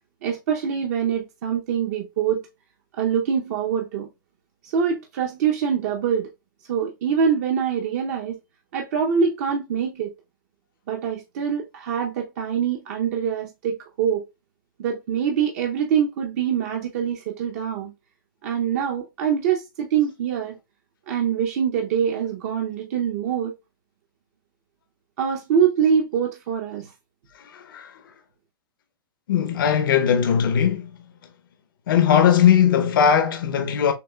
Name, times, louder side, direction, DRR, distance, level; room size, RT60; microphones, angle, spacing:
voice 1, 0.2-2.4 3.0-4.1 4.6-6.3 6.7-8.4 8.7-10.1 10.9-14.2 14.8-17.9 18.4-20.6 21.1-23.6 25.2-26.9, right 7 dB, 45° right, 0.7 m, -24 dB
voice 2, 27.5-27.9 29.3-30.9 31.9-33.9, left 8 dB, 70° left, 0.7 m, -19 dB
6.7 x 2.4 x 2.2 m
supercardioid pair, 165°, 12 cm